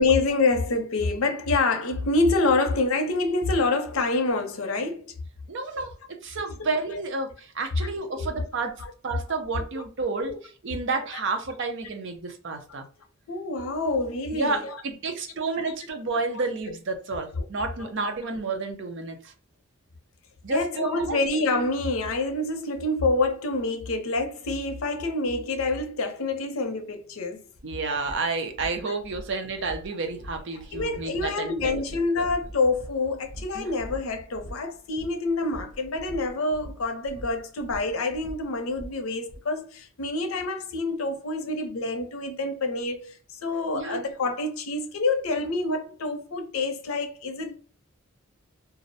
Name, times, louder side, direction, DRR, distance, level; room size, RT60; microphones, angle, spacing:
voice 1, 0.0-5.2 5.8-5.9 6.6-6.7 8.1-8.3 8.8-8.9 9.5-9.8 10.2-10.4 10.9-11.0 12.7-12.8 13.3-14.8 15.6-15.7 16.3-16.4 17.8-17.9 20.5-27.4 30.7-47.6, left 3 dB, 85° left, 0.6 m, -27 dB
voice 2, 5.5-10.3 10.6-12.8 14.3-19.3 20.4-21.2 27.6-31.8 32.2-32.3 33.5-33.7 43.7-44.0, right 3 dB, 60° right, 0.6 m, -30 dB
sound 1, 27.5-27.6 28.0-39.4, equal, 25° left, 0.4 m, -43 dB
2.4 x 2.0 x 2.6 m
head